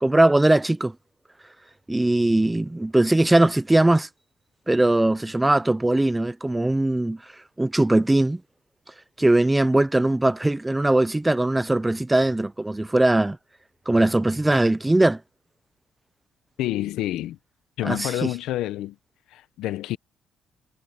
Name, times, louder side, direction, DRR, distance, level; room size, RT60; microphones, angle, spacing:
voice 1, 0.0-0.9 1.9-4.1 4.7-7.2 7.6-8.4 9.2-13.4 13.9-15.2 17.8-18.3, right 1 dB, 10° right, 0.4 m, -20 dB
voice 2, 16.6-17.4 17.8-19.0 19.3-20.0, left 14 dB, 85° left, 0.9 m, -28 dB
cardioid pair, 135°, 0 cm